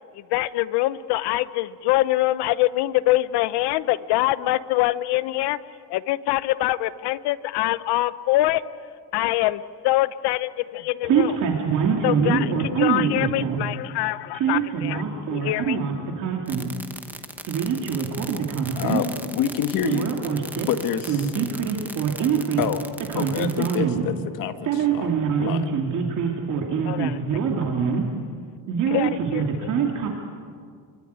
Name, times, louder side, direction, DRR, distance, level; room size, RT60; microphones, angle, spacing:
voice 1, 0.1-5.6 5.9-8.6 9.1-11.4 12.0-15.0 15.3-15.8 26.9-27.2 28.9-29.4, left 16 dB, 80° left, 15 dB, 1.0 m, -24 dB
voice 2, 11.0-13.6 14.3-16.7 17.5-19.0 19.8-20.7 21.1-22.7 23.1-24.1 24.7-28.1 28.7-30.1, right 6 dB, 50° right, 1 dB, 2.7 m, -24 dB
sound 1, 16.5-23.8, right 1 dB, 5° right, 1.0 m, -38 dB
voice 3, 18.8-19.1 19.3-20.1 20.7-21.2 22.6-22.8 23.2-25.1 25.4-25.7, left 9 dB, 55° left, 8 dB, 1.8 m, -27 dB
26.5 x 24.0 x 9.5 m, 2.1 s
cardioid pair, 175°, 40 cm